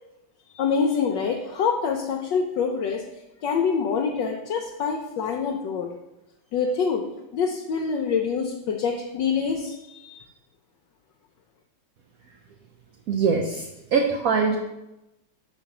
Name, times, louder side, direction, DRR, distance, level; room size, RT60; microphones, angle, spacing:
voice 1, 0.5-3.0 3.4-6.0 6.5-10.2, left 5 dB, 70° left, 2 dB, 1.2 m, -26 dB
voice 2, 13.1-13.6 13.9-14.6, right 5 dB, 75° right, 2 dB, 0.8 m, -22 dB
5.2 x 4.6 x 5.9 m, 0.94 s
omnidirectional pair, 2.2 m